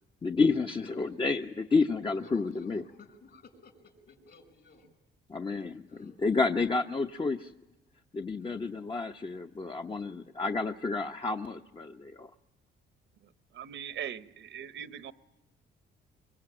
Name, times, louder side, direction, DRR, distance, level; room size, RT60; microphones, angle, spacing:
voice 1, 0.2-2.8 5.3-7.5 8.1-12.3, left 4 dB, 25° left, 4 dB, 0.9 m, -30 dB
voice 2, 0.8-1.1 2.2-4.9 5.9-6.2 8.4-8.6, left 3 dB, 60° left, 9 dB, 5.9 m, -54 dB
voice 3, 13.5-15.1, right 9 dB, 70° right, 12 dB, 1.1 m, -40 dB
24.0 x 23.5 x 8.9 m, 0.98 s
cardioid pair, 90°, 20 cm